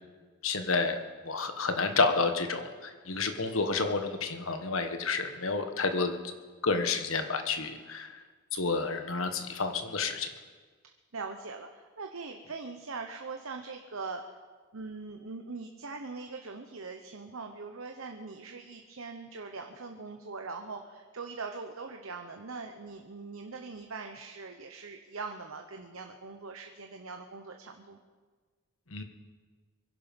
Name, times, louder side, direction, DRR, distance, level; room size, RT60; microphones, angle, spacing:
voice 1, 0.4-1.0 1.2-6.2 6.6-8.2 8.5-10.3 28.9-29.0, left 4 dB, 75° left, 7 dB, 1.4 m, -30 dB
voice 2, 11.1-14.4 14.7-28.0, right 4 dB, 85° right, 4 dB, 1.0 m, -42 dB
24.0 x 11.0 x 5.4 m, 1.5 s
head